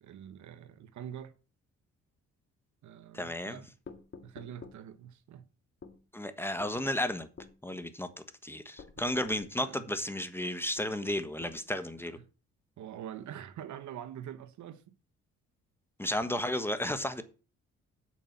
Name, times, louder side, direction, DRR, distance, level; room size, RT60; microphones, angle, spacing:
voice 1, 0.0-1.3 2.8-3.7 4.2-5.5 9.0-9.9 12.1-12.3 12.8-15.0, right 10 dB, 70° right, 1.1 m, -45 dB
voice 2, 3.1-3.6 6.1-7.3 7.6-8.1 8.4-12.2 16.0-17.2, left 1 dB, 5° left, 1.3 m, -33 dB
sound 1, 3.9-4.8 5.8-6.0 6.6-6.8 7.4-7.6 8.8-9.5 10.8-11.6, left 5 dB, 40° left, 2.0 m, -49 dB
8.4 x 6.3 x 7.3 m
cardioid pair, 90°, 30 cm